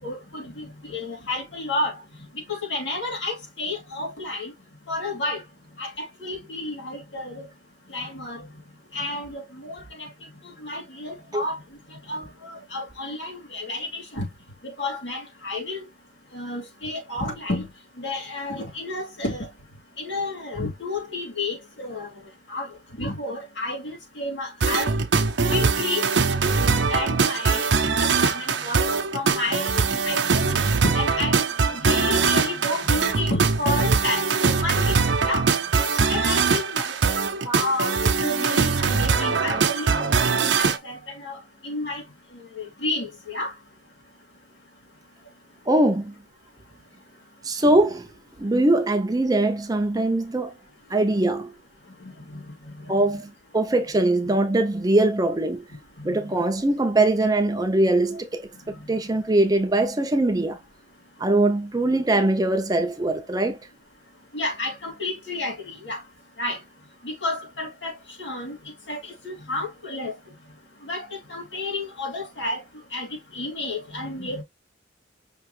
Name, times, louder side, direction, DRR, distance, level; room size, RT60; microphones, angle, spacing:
voice 1, 0.0-2.0 2.5-4.5 4.9-5.4 5.8-7.5 7.9-8.4 8.9-10.1 10.6-11.6 12.1-14.3 14.6-15.8 16.3-17.7 18.0-19.5 20.0-22.1 22.5-22.7 23.0-25.0 25.5-26.0 26.6-27.7 28.0-28.8 29.1-31.4 31.7-35.0 35.2-35.5 36.1-36.9 37.4-41.4 41.6-42.0 42.6-43.5 52.3-53.0 56.0-56.1 64.3-66.0 66.4-66.6 67.0-68.6 68.9-70.1 70.9-72.6 72.9-73.1 73.3-74.4, left 2 dB, 70° left, 2.6 m, -31 dB
sound 1, 24.6-40.8, right 5 dB, 70° right, 0.7 m, -22 dB
voice 2, 45.7-46.1 47.4-48.1 48.4-50.5 50.9-51.5 52.9-55.6 56.0-58.5 58.9-60.6 61.2-63.6, right 2 dB, 20° right, 0.6 m, -22 dB
5.7 x 3.0 x 3.2 m
head